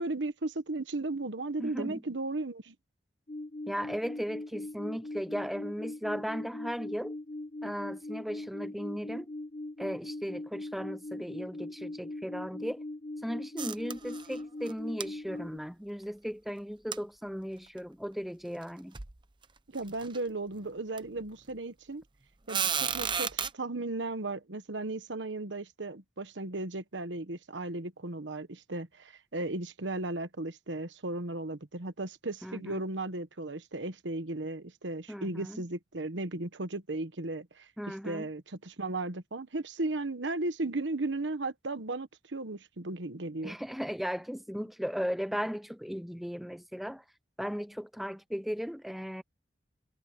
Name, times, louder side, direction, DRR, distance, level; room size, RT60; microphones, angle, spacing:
voice 1, 0.0-2.7 19.7-22.0 22.5-43.6, right 2 dB, 85° right, 1.2 m, -36 dB
voice 2, 1.6-2.0 3.7-7.2 7.6-9.3 9.8-12.8 13.2-19.0 32.4-32.8 35.1-35.6 37.8-38.3 43.4-47.0 47.4-49.2, equal, ahead, 0.4 m, -36 dB
sound 1, 3.3-15.6, left 2 dB, 40° left, 0.9 m, -41 dB
sound 2, 13.6-14.4 14.6-14.7 15.0-15.1 16.9-17.0 17.8-17.9 18.6-18.7 18.9-19.2 19.8-20.2 21.0-21.1 22.5-23.5, right 7 dB, 25° right, 0.8 m, -32 dB
head